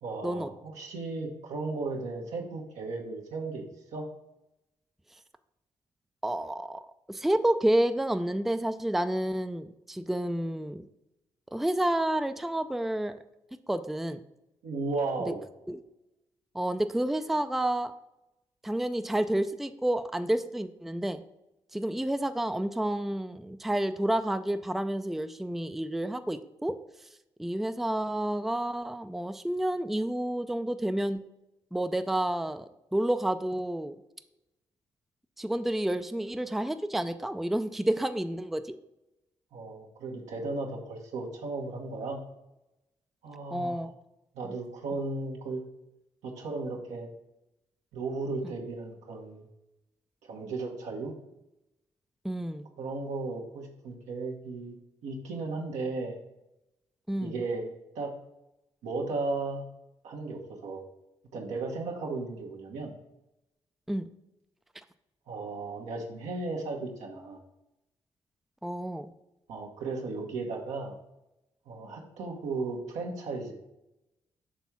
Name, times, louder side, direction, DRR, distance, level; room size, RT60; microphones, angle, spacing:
voice 1, 0.0-3.7 3.9-4.1 14.6-15.4 39.5-42.2 43.2-43.9 44.3-45.6 46.2-47.1 47.9-49.5 50.2-51.1 52.8-54.8 55.0-56.2 57.2-58.2 58.8-59.6 60.0-60.8 61.3-62.9 65.3-67.4 69.5-70.9 71.7-73.5, right 3 dB, 80° right, 0 dB, 1.0 m, -35 dB
voice 2, 6.2-6.8 7.1-10.8 11.5-13.2 13.7-14.2 15.3-15.4 15.7-15.8 16.5-17.9 18.6-21.2 21.7-26.8 27.4-31.2 31.7-34.0 35.4-38.8 43.5-43.9 44.4-44.5 52.2-52.7 57.1-57.3 63.9-64.1 68.6-69.1, right 1 dB, ahead, 10 dB, 0.4 m, -30 dB
6.1 x 3.5 x 5.8 m, 0.91 s
hypercardioid pair, 45°, 12 cm